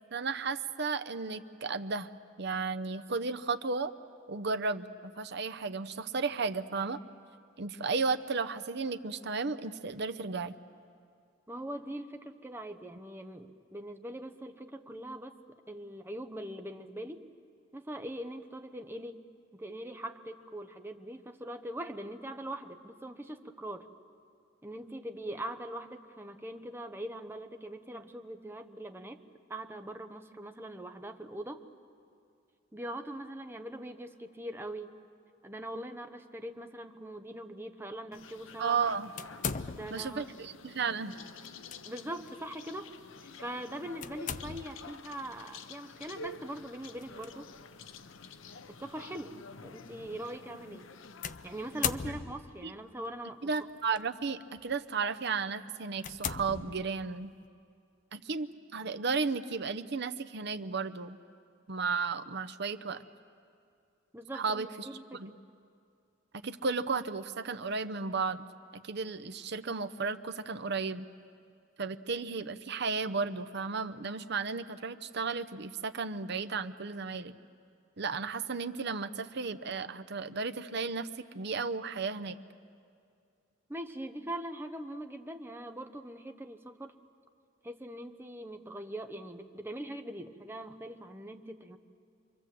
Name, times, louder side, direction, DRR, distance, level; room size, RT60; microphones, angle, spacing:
voice 1, 0.1-2.1 2.4-3.9 4.3-7.0 7.6-10.5 38.6-39.1 39.9-41.1 52.6-52.7 53.4-57.3 58.1-61.2 61.7-63.0 64.3-65.3 66.4-68.5 68.7-71.1 71.8-77.3 78.0-82.4, right 4 dB, 55° right, 11 dB, 0.8 m, -34 dB
voice 2, 11.5-15.4 15.7-17.3 17.7-19.2 19.5-23.9 24.6-29.2 29.5-31.6 32.7-34.9 35.4-38.8 39.7-40.2 41.8-42.9 43.4-47.5 48.7-49.3 49.6-50.9 51.4-53.5 64.1-65.4 83.7-86.9 87.6-91.8, right 1 dB, 10° right, 6 dB, 1.0 m, -42 dB
sound 1, 38.1-51.9, left 4 dB, 75° left, 0.8 m, -49 dB
sound 2, 39.2-40.2 41.4-41.8 42.3-42.4 44.0-44.9 47.0-47.3 48.1-48.2 51.2-52.6 53.5-54.0 54.6-54.8 55.3-55.4 56.0-57.2, left 7 dB, 40° left, 0.6 m, -38 dB
27.0 x 24.0 x 7.7 m, 2.4 s
head